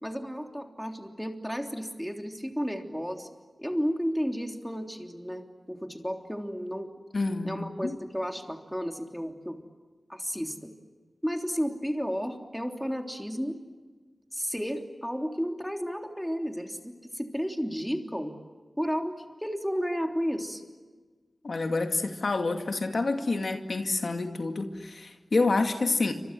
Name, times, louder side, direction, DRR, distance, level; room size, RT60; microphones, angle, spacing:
voice 1, 0.0-3.3 3.6-6.9 7.4-9.6 10.1-10.7 11.2-13.6 14.3-18.3 18.8-19.1 19.4-20.6, equal, ahead, 3 dB, 3.3 m, -32 dB
voice 2, 7.1-8.0 21.4-26.1, left 3 dB, 70° left, 5 dB, 2.3 m, -28 dB
29.0 x 25.5 x 7.7 m, 1.4 s
wide cardioid pair, 65°, 0 cm